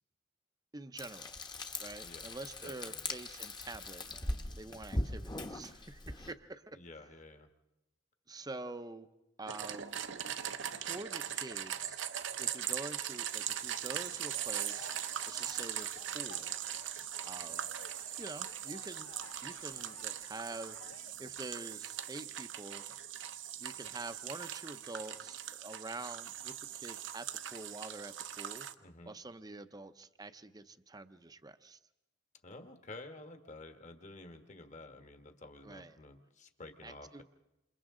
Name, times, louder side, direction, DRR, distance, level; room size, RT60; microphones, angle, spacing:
voice 1, 0.7-1.3 1.8-4.0 4.6-6.8 8.3-9.1 9.4-10.0 10.7-12.0 12.4-14.9 15.3-16.6 17.3-17.7 18.2-19.1 19.4-20.8 21.2-23.0 23.6-28.7 29.1-31.8 35.6-36.0 36.8-37.2, right 2 dB, 20° right, 11 dB, 0.7 m, -46 dB
Frying (food), 1.0-6.3, left 1 dB, 20° left, 1.1 m, -40 dB
voice 2, 2.6-3.1 6.7-7.5 28.8-29.1 32.4-37.2, left 2 dB, 35° left, 6 dB, 1.5 m, -51 dB
sound 1, 9.5-28.7, right 10 dB, 65° right, 0.8 m, -40 dB
sound 2, 14.2-21.1, left 3 dB, 80° left, 1.4 m, -55 dB
28.5 x 28.0 x 3.8 m, 0.94 s
head